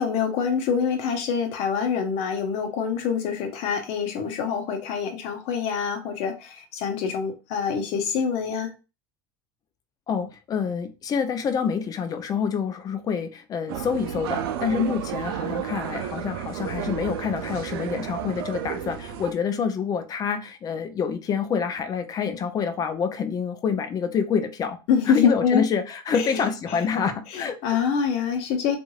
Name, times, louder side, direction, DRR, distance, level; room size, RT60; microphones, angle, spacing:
voice 1, 0.0-8.7 24.9-25.7 26.1-26.8 27.3-28.8, left 6 dB, 60° left, 6 dB, 0.8 m, -25 dB
voice 2, 10.1-24.8 25.1-27.8, left 6 dB, 30° left, 8 dB, 0.5 m, -27 dB
sound 1, 13.7-19.3, right 9 dB, 85° right, 0.4 m, -32 dB
3.0 x 2.5 x 2.3 m, 0.31 s
supercardioid pair, 110°, 12 cm